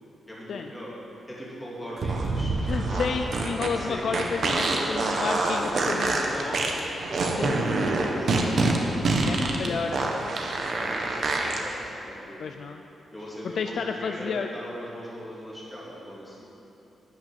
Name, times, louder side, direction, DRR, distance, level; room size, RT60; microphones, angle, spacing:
voice 1, 0.3-0.9 1.3-3.2 3.7-4.1 4.5-9.8 10.7-12.4 13.1-16.4, equal, 5° left, -7 dB, 2.6 m, -38 dB
sound 1, 2.0-11.6, right 3 dB, 45° right, 1.1 m, -26 dB
voice 2, 2.6-6.3 7.4-7.7 9.3-10.1 12.4-12.8 13.5-14.5, left 5 dB, 50° left, 5 dB, 0.4 m, -31 dB
12.0 x 6.1 x 9.0 m, 3.0 s
wide cardioid pair, 175°, 0 cm